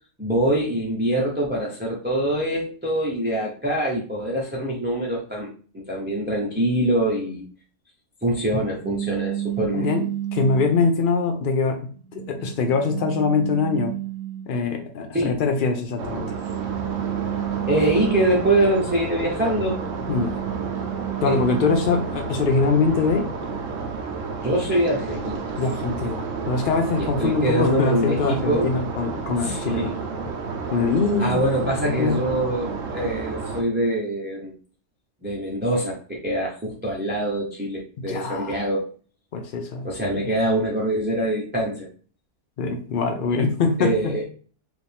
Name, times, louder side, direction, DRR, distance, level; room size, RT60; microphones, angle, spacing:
voice 1, 0.2-7.4 8.2-9.9 15.1-15.4 17.7-19.8 21.2-21.4 24.4-25.4 27.0-28.8 29.3-29.9 31.2-34.5 35.2-38.9 39.8-41.9 43.8-44.2, right 1 dB, 10° right, -3 dB, 0.5 m, -24 dB
sound 1, 8.8-11.0 11.6-14.8 15.9-18.9 19.3-22.3, right 13 dB, 90° right, 1.2 m, -31 dB
voice 2, 9.7-10.1 10.3-13.9 14.5-16.3 20.1-20.4 21.2-23.3 25.6-29.9 30.7-32.2 38.1-38.6 39.3-39.9 42.6-44.2, left 4 dB, 85° left, 5 dB, 0.4 m, -23 dB
sound 2, 16.0-33.6, right 4 dB, 60° right, 1.0 m, -31 dB
5.0 x 2.6 x 3.4 m, 0.41 s
omnidirectional pair, 1.7 m